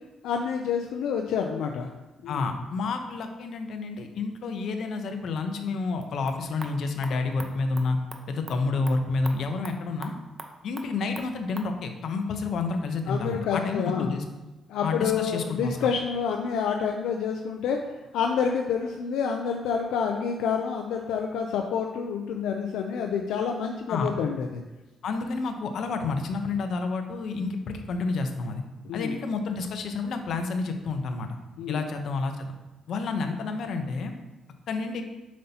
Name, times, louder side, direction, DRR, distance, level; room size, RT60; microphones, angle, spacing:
voice 1, 0.2-1.9 2.2-2.5 13.1-14.2 14.7-17.8 18.1-24.6 28.8-29.2 31.6-31.9, left 6 dB, 90° left, 2 dB, 0.5 m, -28 dB
voice 2, 2.3-8.0 8.3-10.1 10.6-14.2 14.8-15.8 23.9-24.1 25.0-28.6 28.9-31.4 31.7-32.5 32.9-34.1 34.7-35.0, left 3 dB, 65° left, 5 dB, 0.8 m, -29 dB
sound 1, 6.0-11.7, right 2 dB, 25° right, 0.8 m, -45 dB
7.5 x 5.5 x 2.9 m, 1.1 s
cardioid pair, 90°, 0 cm